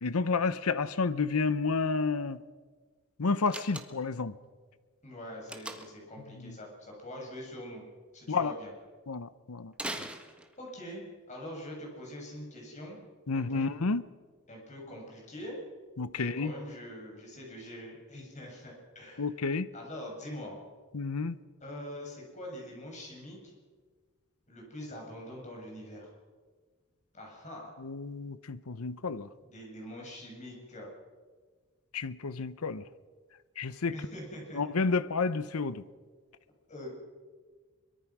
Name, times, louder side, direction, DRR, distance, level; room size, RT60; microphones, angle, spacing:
voice 1, 0.0-2.4 3.2-4.3 6.4-6.5 8.3-8.5 9.1-9.7 13.3-14.0 16.0-16.5 19.2-19.7 20.9-21.4 27.8-29.3 31.9-32.8 33.6-33.9 34.5-35.8, left 4 dB, 85° left, 15 dB, 0.8 m, -30 dB
Slam, 3.5-4.2 5.5-6.1 9.7-10.8, right 1 dB, 5° right, 1.5 m, -40 dB
voice 2, 5.0-7.8 8.1-8.7 10.6-13.0 13.3-13.7 14.5-15.6 16.1-19.3 19.7-20.6 21.6-23.5 24.5-26.1 27.1-27.7 29.4-30.9 33.9-34.6 36.7-36.9, left 1 dB, 35° left, -1 dB, 7.3 m, -44 dB
23.5 x 23.0 x 6.1 m, 1.5 s
head